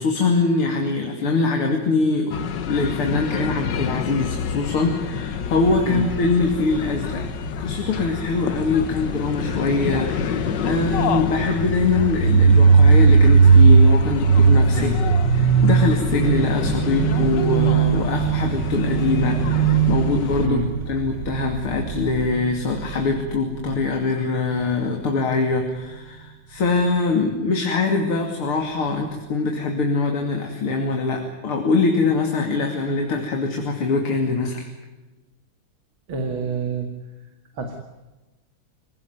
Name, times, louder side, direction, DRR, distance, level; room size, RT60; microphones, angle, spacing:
voice 1, 0.0-2.4 2.7-7.2 7.6-20.6 20.9-34.6, left 3 dB, 90° left, 3 dB, 3.5 m, -23 dB
sound 1, 2.3-20.5, left 7 dB, 60° left, 1.7 m, -28 dB
sound 2, 5.4-22.3, right 4 dB, 30° left, 6.4 m, -37 dB
sound 3, 11.8-23.3, right 5 dB, 50° right, 1.1 m, -17 dB
voice 2, 14.7-15.1 20.4-20.7 36.1-36.9 37.5-37.8, right 3 dB, 70° right, 4 dB, 3.0 m, -26 dB
26.5 x 18.0 x 9.4 m, 1.1 s
omnidirectional pair, 2.3 m